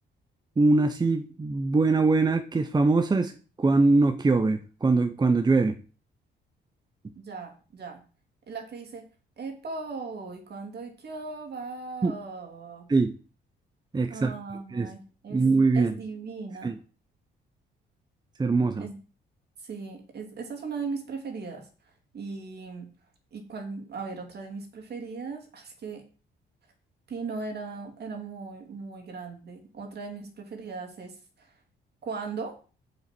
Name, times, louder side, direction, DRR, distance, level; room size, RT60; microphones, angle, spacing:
voice 1, 0.6-3.3 3.6-5.7 12.0-12.1 12.9-13.1 13.9-14.3 14.7-14.9 15.3-15.9 16.6-16.7 18.4-18.9, right 3 dB, 20° right, 8 dB, 0.8 m, -22 dB
voice 2, 7.1-8.0 8.5-9.0 9.4-12.9 14.1-15.4 15.7-16.7 18.8-19.0 19.6-21.7 22.1-22.9 23.3-26.1 27.1-31.5 32.0-32.6, right 4 dB, 55° right, 3 dB, 2.8 m, -38 dB
7.2 x 6.2 x 6.0 m, 0.37 s
cardioid pair, 90°, 20 cm